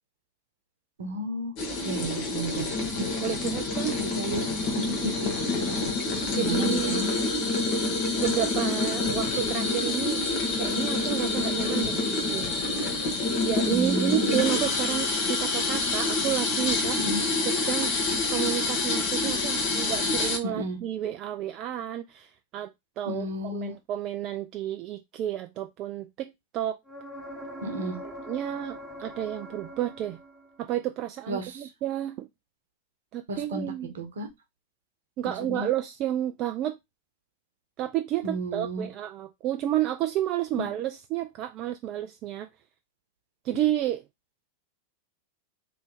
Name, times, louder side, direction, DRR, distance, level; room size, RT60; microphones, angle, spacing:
voice 1, 1.0-1.5 1.8-3.1 4.0-4.4 4.8-5.3 5.6-5.9 6.3-7.1 13.7-14.4 17.0-17.2 20.4-20.8 23.1-23.7 27.6-28.0 31.3-31.7 33.3-33.7 33.9-34.3 35.4-35.7 38.2-38.9 40.6-40.7, equal, 60° right, 1.0 m, -32 dB
sound 1, 1.6-20.4, left 3 dB, 40° left, 1.1 m, -27 dB
voice 2, 3.2-4.0 4.9-5.1 6.3-7.0 8.1-10.2 10.5-12.5 13.4-17.0 17.5-17.9 18.3-26.8 28.0-30.2 30.6-32.3 33.1-33.9 35.2-36.8 37.8-42.5 43.4-44.0, right 12 dB, 35° right, 0.4 m, -31 dB
sound 2, 26.9-30.6 34.3-34.4, equal, 5° left, 1.1 m, -42 dB
3.3 x 3.1 x 3.9 m
figure-of-eight pair, 90°, 0 cm